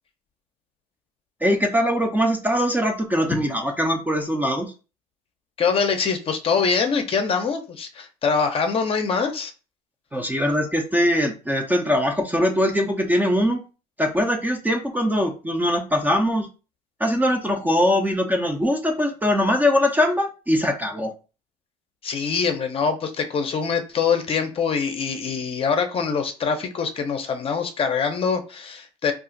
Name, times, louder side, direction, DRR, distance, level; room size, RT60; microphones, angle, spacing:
voice 1, 1.4-4.7 10.1-13.6 14.0-16.5 17.0-21.1, equal, 10° right, 4 dB, 0.5 m, -22 dB
voice 2, 5.6-9.5 22.0-29.1, left 5 dB, 35° left, 6 dB, 0.6 m, -24 dB
2.4 x 2.4 x 3.8 m, 0.33 s
cardioid pair, 105°, 16 cm